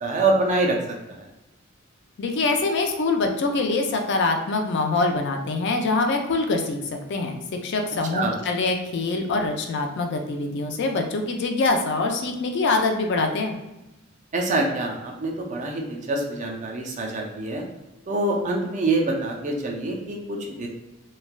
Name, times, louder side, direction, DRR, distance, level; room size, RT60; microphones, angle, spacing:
voice 1, 0.0-0.8 1.1-1.2 8.1-8.3 14.3-17.6 18.1-20.7, right 2 dB, 35° right, 0 dB, 0.5 m, -25 dB
voice 2, 2.2-6.8 7.1-13.6, left 3 dB, 55° left, 4 dB, 0.4 m, -24 dB
3.1 x 2.2 x 2.4 m, 1.0 s
head